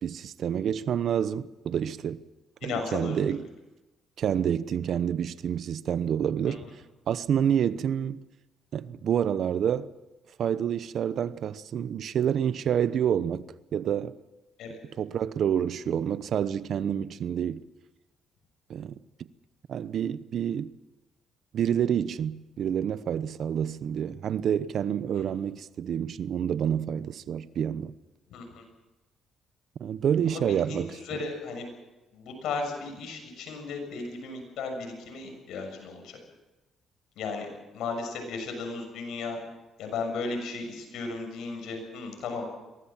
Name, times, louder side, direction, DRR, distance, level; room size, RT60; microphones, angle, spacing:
voice 1, 0.0-2.2 2.6-3.4 4.2-6.6 7.1-8.2 8.7-9.9 10.4-13.5 13.7-14.2 15.0-17.6 18.7-19.0 19.7-20.7 21.5-27.9 29.8-31.0, right 9 dB, 65° right, 0.9 m, -28 dB
voice 2, 2.6-3.2 6.4-6.7 14.6-14.8 25.1-25.2 28.3-28.6 30.3-31.6 32.1-36.2 37.1-37.5 37.7-39.4 39.8-42.4, left 4 dB, 80° left, 6.8 m, -35 dB
23.0 x 18.0 x 7.4 m
cardioid pair, 90°, 0 cm